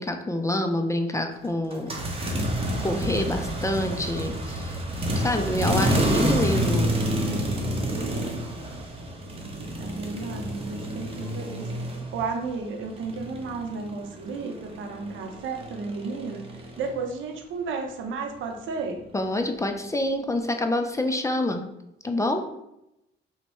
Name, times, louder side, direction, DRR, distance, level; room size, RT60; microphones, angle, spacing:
voice 1, 0.0-2.4 2.8-4.8 5.2-6.9 19.1-21.6 22.0-22.4, left 1 dB, 15° left, 5 dB, 0.4 m, -27 dB
sound 1, 1.7-12.5 12.8-16.9, right 1 dB, 30° right, 0.8 m, -29 dB
voice 2, 9.8-11.7 12.1-16.4 16.8-19.0, right 4 dB, 75° right, 3 dB, 0.6 m, -33 dB
3.1 x 2.1 x 4.2 m, 0.86 s
cardioid pair, 90°, 20 cm